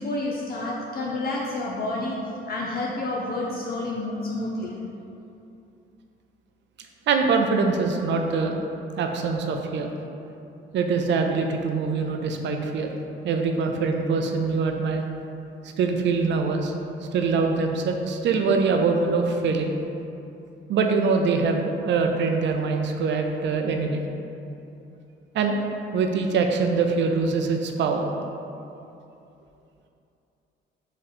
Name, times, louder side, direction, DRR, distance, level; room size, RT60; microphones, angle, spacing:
voice 1, 0.0-2.2 2.5-4.8, left 2 dB, 50° left, -4 dB, 0.6 m, -29 dB
voice 2, 7.1-8.6 9.0-9.9 10.7-13.0 13.2-15.0 15.8-16.7 17.1-19.7 20.7-24.0 25.3-25.6 25.9-28.1, right 4 dB, 65° right, 4 dB, 0.5 m, -23 dB
3.9 x 3.1 x 4.2 m, 2.8 s
cardioid pair, 90°, 20 cm